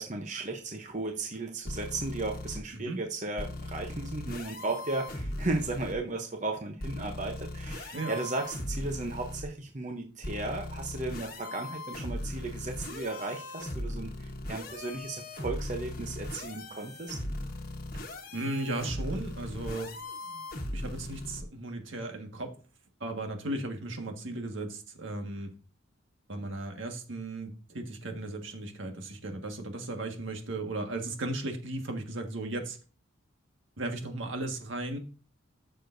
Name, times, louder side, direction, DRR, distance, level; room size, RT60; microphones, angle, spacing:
voice 1, 0.0-17.2, right 2 dB, 35° right, 3 dB, 0.8 m, -35 dB
sound 1, 1.6-2.6 3.4-5.9 6.8-9.4 10.2-21.4, left 1 dB, 45° left, 1.2 m, -38 dB
voice 2, 18.3-19.9 20.7-22.5 23.0-25.5 26.3-32.8 33.8-35.0, right 2 dB, 75° right, 4 dB, 1.6 m, -36 dB
13.5 x 6.6 x 2.6 m, 0.35 s
head